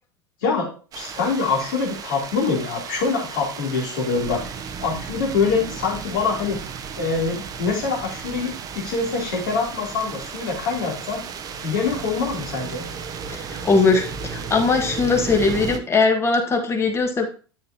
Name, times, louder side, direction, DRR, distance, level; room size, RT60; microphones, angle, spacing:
voice 1, 0.9-4.5 4.8-6.6 7.0-11.2 11.6-12.8, left 4 dB, 55° left, -2 dB, 3.1 m, -24 dB
sound 1, 0.9-15.8, right 6 dB, 30° right, 0.7 m, -34 dB
voice 2, 13.3-17.3, left 4 dB, 20° left, 5 dB, 1.5 m, -20 dB
9.5 x 6.5 x 2.9 m, 0.38 s
figure-of-eight pair, 80°, 13 cm